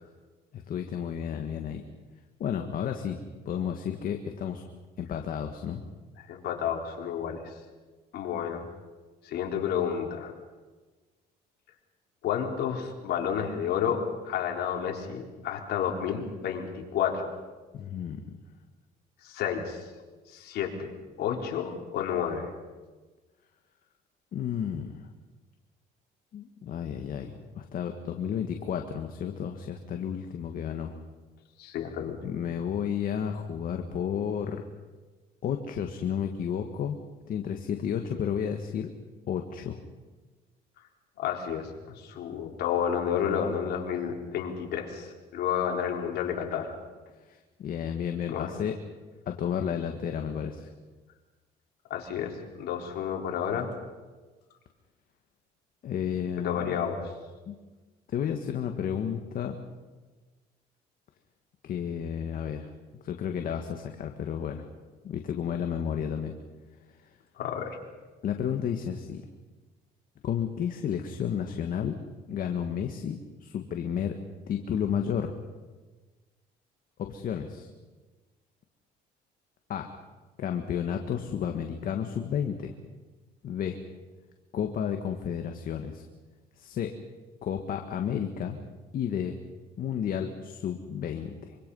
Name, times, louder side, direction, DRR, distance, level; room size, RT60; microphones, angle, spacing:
voice 1, 0.5-1.8 2.4-4.6 5.0-5.8 17.7-18.2 24.3-25.1 26.3-31.0 32.2-34.6 35.4-37.0 37.3-38.9 39.3-39.8 47.3-48.8 49.3-50.7 55.8-57.0 57.5-57.6 58.1-59.6 61.6-64.7 65.0-66.3 68.2-69.3 70.2-72.0 72.3-74.2 74.5-75.3 77.0-77.7 79.7-79.9 80.4-82.7 83.4-83.8 84.5-86.0 86.6-86.9 87.4-88.6 88.9-89.4 89.8-91.6, left 8 dB, 55° left, 4 dB, 1.8 m, -32 dB
voice 2, 6.3-7.4 8.1-8.7 9.2-10.3 12.2-17.3 19.2-19.9 20.3-20.9 21.2-22.5 31.6-32.3 41.2-46.7 48.3-48.6 51.9-53.7 56.4-57.1 67.4-67.8, left 8 dB, 75° left, 1 dB, 4.0 m, -31 dB
25.0 x 25.0 x 5.6 m, 1.3 s
cardioid pair, 110°, 17 cm